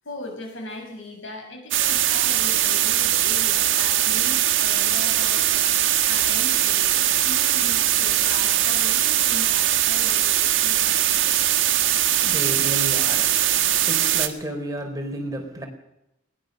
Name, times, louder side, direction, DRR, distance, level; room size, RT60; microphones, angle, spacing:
voice 1, 0.0-11.0, left 1 dB, 70° left, 6.7 m, -39 dB
sound 1, 1.7-14.3, right 12 dB, 65° right, 1.6 m, -21 dB
voice 2, 11.8-15.7, right 1 dB, 15° right, 4.0 m, -32 dB
21.5 x 19.0 x 6.5 m
head